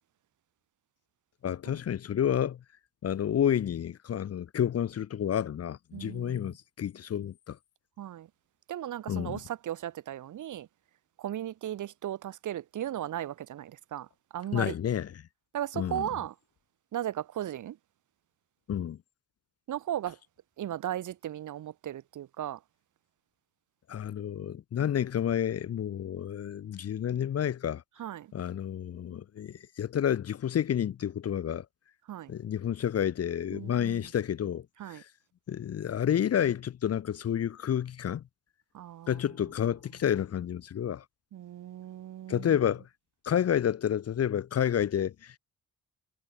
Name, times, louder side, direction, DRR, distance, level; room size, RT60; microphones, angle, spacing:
voice 1, 1.4-2.6 3.0-7.6 9.1-9.4 14.5-15.1 15.8-16.1 18.7-19.0 23.9-27.8 28.3-31.6 32.3-34.7 34.9-35.0 35.5-38.2 39.1-41.0 42.3-42.8 43.2-45.4, left 9 dB, 45° left, 0.7 m, -30 dB
voice 2, 5.9-6.6 8.0-8.3 8.7-10.7 11.2-14.7 15.5-16.4 16.9-17.8 19.7-20.2 20.6-22.6 28.0-28.3 32.1-32.3 33.5-34.1 34.8-35.0 38.7-39.2 41.3-42.6, right 11 dB, 55° right, 0.8 m, -36 dB
supercardioid pair, 55°, 35 cm